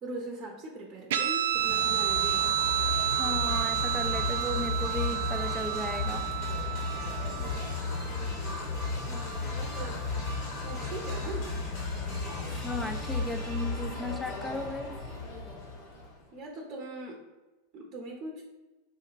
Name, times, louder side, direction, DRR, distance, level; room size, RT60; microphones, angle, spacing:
voice 1, 0.0-2.6 7.4-7.8 8.0-8.4 8.9-10.1 10.6-11.5 16.3-17.2 17.7-18.4, right 2 dB, 35° right, 0 dB, 0.7 m, -41 dB
Guitar, 1.1-8.0, right 12 dB, 70° right, 0.3 m, -30 dB
sound 1, 1.5-16.2, left 3 dB, 55° left, 1.1 m, -34 dB
voice 2, 3.2-6.3 12.5-15.0, left 1 dB, 10° left, 5 dB, 0.5 m, -36 dB
4.4 x 2.3 x 3.1 m, 1.1 s
hypercardioid pair, 90°, 0 cm